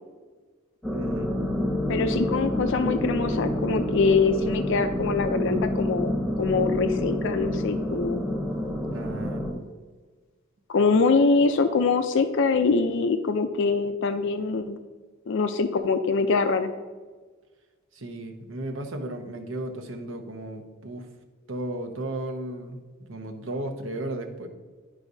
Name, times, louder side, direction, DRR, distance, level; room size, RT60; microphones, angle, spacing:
sound 1, 0.8-9.5, left 1 dB, ahead, 1.0 m, -28 dB
voice 1, 0.9-1.3 8.9-9.4 17.9-21.1 21.5-22.8 23.1-24.5, right 1 dB, 70° right, 4 dB, 0.9 m, -34 dB
voice 2, 1.9-6.1 6.4-8.2 10.7-14.8 15.3-16.7, left 4 dB, 65° left, 8 dB, 0.4 m, -24 dB
11.5 x 4.8 x 2.7 m, 1.4 s
head